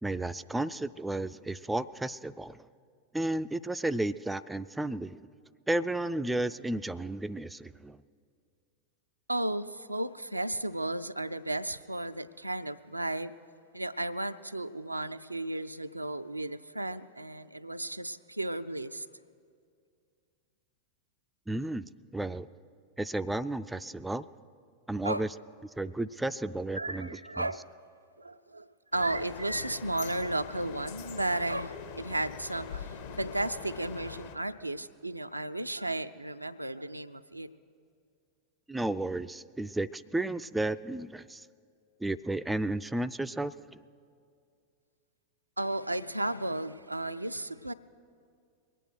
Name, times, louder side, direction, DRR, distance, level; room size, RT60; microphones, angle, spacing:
voice 1, 0.0-2.7 3.1-5.2 5.7-8.0 21.5-22.5 23.0-24.3 24.9-25.3 25.8-27.1 27.4-27.5 38.7-41.5 42.0-43.8, right 2 dB, 5° right, 13 dB, 0.3 m, -33 dB
voice 2, 9.3-13.3 13.7-19.1 25.0-25.3 26.7-27.7 28.2-32.9 33.2-37.5 45.6-47.7, right 1 dB, 85° right, 10 dB, 0.4 m, -34 dB
sound 1, 28.9-34.4, left 7 dB, 50° left, 0.9 m, -46 dB
sound 2, 29.1-34.2, left 5 dB, 75° left, 4.2 m, -46 dB
22.0 x 9.1 x 6.2 m, 2.3 s
figure-of-eight pair, 90°, 0 cm